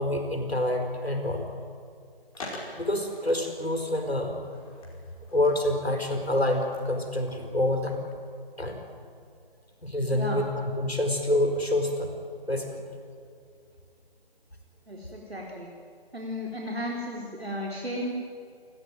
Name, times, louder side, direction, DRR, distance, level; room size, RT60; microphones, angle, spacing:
voice 1, 0.0-1.5 2.4-2.5 2.8-4.4 5.3-8.0 8.6-8.8 9.8-10.5 10.8-12.1 12.5-12.8, left 1 dB, 85° left, 4 dB, 5.2 m, -27 dB
Skateboard, 2.3-7.9, left 1 dB, 35° left, 5.4 m, -46 dB
voice 2, 10.1-10.4 14.9-15.7 16.1-18.1, equal, 85° right, -2 dB, 4.5 m, -34 dB
29.0 x 14.5 x 9.3 m, 2.4 s
figure-of-eight pair, 150°, 30 cm